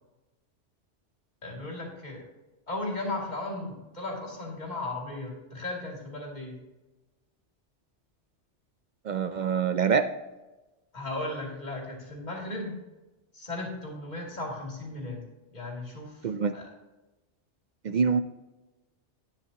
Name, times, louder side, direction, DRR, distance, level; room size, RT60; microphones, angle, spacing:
voice 1, 1.4-2.2 2.7-6.6 10.9-12.8 13.3-15.2 15.5-16.3 16.5-16.7, left 2 dB, 40° left, -1 dB, 2.6 m, -36 dB
voice 2, 9.0-10.1 16.2-16.5 17.8-18.2, right 6 dB, 60° right, 11 dB, 0.4 m, -25 dB
11.5 x 9.5 x 2.8 m, 1.1 s
omnidirectional pair, 1.2 m